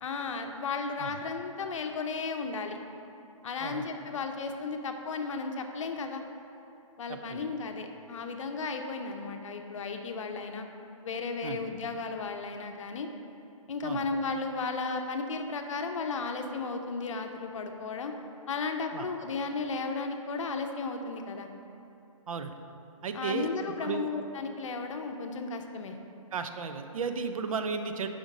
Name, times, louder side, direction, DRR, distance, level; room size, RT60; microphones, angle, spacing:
voice 1, 0.0-2.8 3.4-6.2 7.0-10.7 11.0-13.1 13.7-18.1 18.5-21.5 23.1-26.0, left 4 dB, 65° left, 5 dB, 0.6 m, -34 dB
voice 2, 7.1-7.4 11.4-11.6 13.8-14.0 18.9-19.1 22.3-22.5 23.0-23.5 23.8-24.1 26.3-28.1, right 5 dB, 75° right, 8 dB, 0.5 m, -34 dB
5.1 x 5.0 x 4.0 m, 2.8 s
hypercardioid pair, 160°, 18 cm